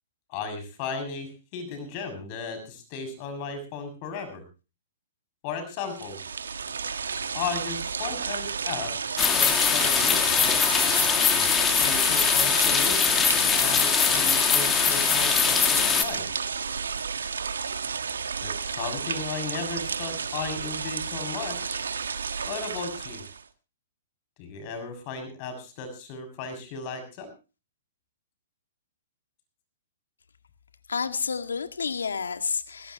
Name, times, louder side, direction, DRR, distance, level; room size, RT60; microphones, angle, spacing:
voice 1, 0.3-4.4 5.4-6.2 7.3-8.9 9.3-10.5 11.3-16.3 18.4-21.8 22.4-23.2 24.4-27.3, left 5 dB, 40° left, 9 dB, 6.7 m, -36 dB
sound 1, 5.8-23.4, right 6 dB, 80° right, 1.4 m, -32 dB
sound 2, 9.2-16.0, left 7 dB, 20° left, 2.1 m, -22 dB
voice 2, 30.9-32.9, left 5 dB, 85° left, 8 dB, 2.0 m, -30 dB
21.0 x 17.0 x 2.9 m, 0.33 s
hypercardioid pair, 125°, 0 cm